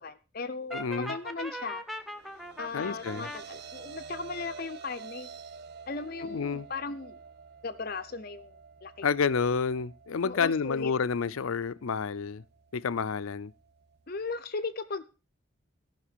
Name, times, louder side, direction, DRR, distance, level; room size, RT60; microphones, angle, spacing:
voice 1, 0.0-1.8 2.6-5.3 5.9-7.2 7.6-9.1 10.2-10.9 14.1-15.0, left 4 dB, 45° left, 0.6 m, -37 dB
voice 2, 0.7-1.1 2.7-3.3 6.3-6.7 9.0-12.4 12.7-13.5, left 5 dB, 90° left, 0.5 m, -29 dB
Brass instrument, 0.7-3.4, equal, ahead, 0.8 m, -39 dB
sound 1, 2.0-14.4, right 5 dB, 50° right, 0.5 m, -49 dB
14.5 x 5.8 x 6.7 m
head